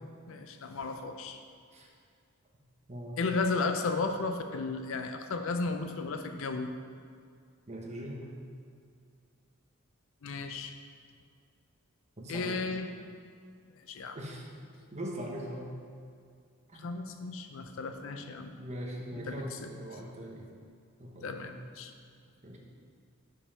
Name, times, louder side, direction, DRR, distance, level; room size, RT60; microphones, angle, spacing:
voice 1, 0.3-1.4 3.2-6.7 10.2-10.7 12.3-12.9 13.9-14.2 16.8-18.5 19.1-19.7 21.2-21.9, left 3 dB, 65° left, 6 dB, 0.5 m, -34 dB
voice 2, 7.7-8.3 12.2-12.6 14.1-14.5 14.9-15.7 16.7-16.8 18.6-20.5 21.0-21.5 22.4-22.6, right 1 dB, 35° right, -1 dB, 1.0 m, -41 dB
5.5 x 5.2 x 5.5 m, 2.2 s
head